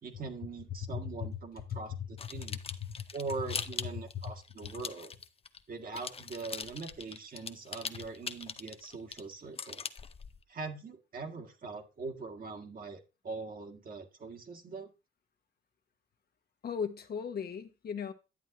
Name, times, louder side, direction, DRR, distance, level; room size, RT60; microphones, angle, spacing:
voice 1, 0.0-1.9 2.3-2.6 3.1-5.1 5.7-9.8 10.5-14.9, right 4 dB, 45° right, 1.9 m, -42 dB
voice 2, 0.7-3.1 3.9-4.3 4.6-4.7 16.6-18.1, left 7 dB, 50° left, 1.2 m, -38 dB
sound 1, 2.2-5.6 5.9-10.4, left 5 dB, 30° left, 0.7 m, -41 dB
11.0 x 8.0 x 3.0 m
cardioid pair, 90°, 20 cm